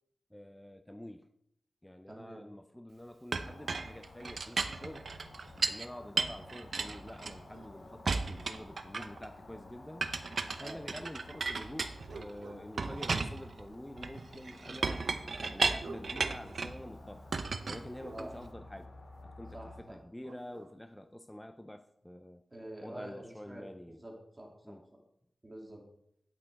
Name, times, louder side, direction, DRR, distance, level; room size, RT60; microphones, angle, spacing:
voice 1, 0.3-1.3 1.8-5.1 5.6-10.1 10.5-15.1 15.4-17.2 17.7-18.9 19.2-22.4 22.8-24.0 24.6-24.8, left 1 dB, 10° left, 8 dB, 0.5 m, -47 dB
voice 2, 2.1-2.5 10.6-10.8 18.1-18.3 19.5-20.0 22.5-24.8 25.4-25.8, right 1 dB, 15° right, 0 dB, 2.5 m, -47 dB
Chink clink, 3.3-5.9 6.2-7.7 8.1-9.3 10.0-12.3 12.8-16.8 17.3-18.5, right 4 dB, 55° right, 0.7 m, -35 dB
sound 1, 3.4-19.8, left 2 dB, 80° left, 2.5 m, -53 dB
sound 2, 11.0-11.2 11.7-13.7 15.5-18.3 20.0-20.8, right 4 dB, 85° right, 0.8 m, -52 dB
10.0 x 8.2 x 4.7 m, 0.74 s
wide cardioid pair, 155°, 0 cm